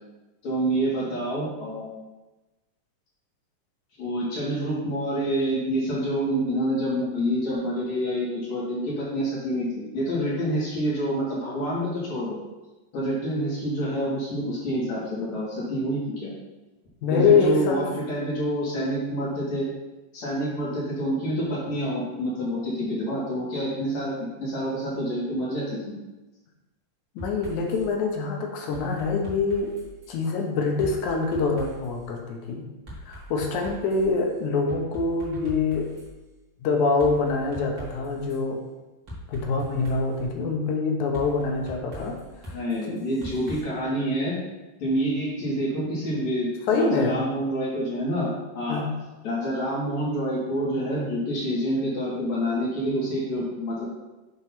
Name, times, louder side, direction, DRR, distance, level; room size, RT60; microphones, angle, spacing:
voice 1, 0.4-2.0 4.0-12.4 12.9-16.3 17.1-19.7 20.1-25.9 42.5-44.4 44.8-48.3 48.6-48.8 49.2-53.8, equal, 55° left, -6 dB, 2.9 m, -27 dB
voice 2, 17.0-17.8 27.2-29.7 30.1-32.6 33.0-35.9 36.6-38.6 39.3-42.2 42.5-42.6 42.9-43.0 46.7-47.2 48.7-48.9, left 4 dB, 70° left, 1 dB, 2.0 m, -25 dB
sound 1, 27.2-27.8 28.7-30.2 30.8-32.0 32.9-34.2 34.7-36.1 37.0-38.4 39.1-40.2 41.1-43.6, equal, 40° right, 2.1 m, -41 dB
8.0 x 3.1 x 5.9 m, 1.1 s
omnidirectional pair, 4.1 m